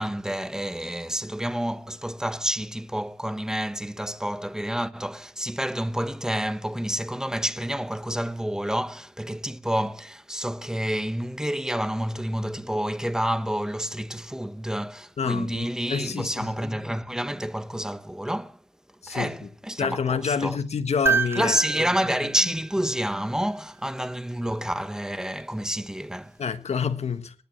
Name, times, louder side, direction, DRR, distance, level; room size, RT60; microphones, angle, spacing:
voice 1, 0.0-18.6 19.1-20.6 21.4-26.4, equal, 5° right, 1.1 m, -29 dB
voice 2, 15.2-16.7 19.0-19.3 19.8-21.6 26.4-27.4, left 6 dB, 80° left, 1.4 m, -28 dB
sound 1, 21.1-23.4 25.4-25.5, right 5 dB, 20° right, 2.3 m, -28 dB
26.0 x 10.0 x 4.5 m
wide cardioid pair, 70°, 11 cm